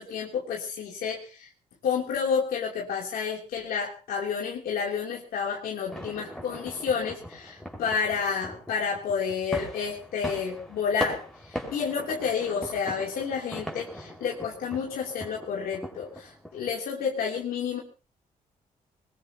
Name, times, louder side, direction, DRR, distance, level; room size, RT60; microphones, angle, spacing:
voice 1, 0.0-1.5 1.8-17.8, left 6 dB, 85° left, -3 dB, 3.2 m, -30 dB
sound 1, 5.9-16.7, equal, 5° left, 4.9 m, -40 dB
21.5 x 20.5 x 2.9 m, 0.36 s
cardioid pair, 100°, 15 cm